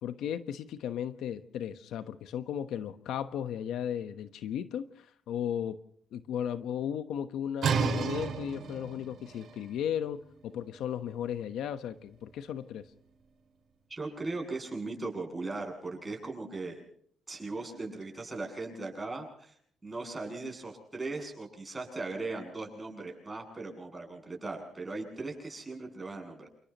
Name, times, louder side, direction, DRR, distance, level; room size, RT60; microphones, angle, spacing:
voice 1, 0.0-5.8 6.1-12.9, left 9 dB, 80° left, 9 dB, 1.2 m, -35 dB
sound 1, 7.6-13.2, right 6 dB, 55° right, 5.1 m, -35 dB
voice 2, 13.9-16.8 17.3-19.5 19.8-26.5, right 3 dB, 15° right, 1 dB, 7.9 m, -38 dB
29.5 x 29.0 x 3.1 m, 0.63 s
cardioid pair, 135°, 0 cm